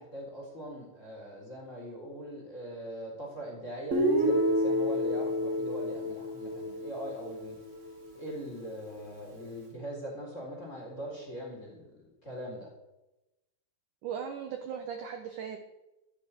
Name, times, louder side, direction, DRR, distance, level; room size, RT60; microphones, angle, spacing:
voice 1, 0.0-7.6 8.1-12.7, equal, 20° left, -2 dB, 3.9 m, -41 dB
Guitar, 3.9-7.9, equal, 30° right, 1.6 m, -29 dB
voice 2, 14.0-15.6, right 7 dB, 65° right, 5 dB, 2.1 m, -37 dB
13.5 x 11.5 x 6.4 m, 0.97 s
omnidirectional pair, 4.8 m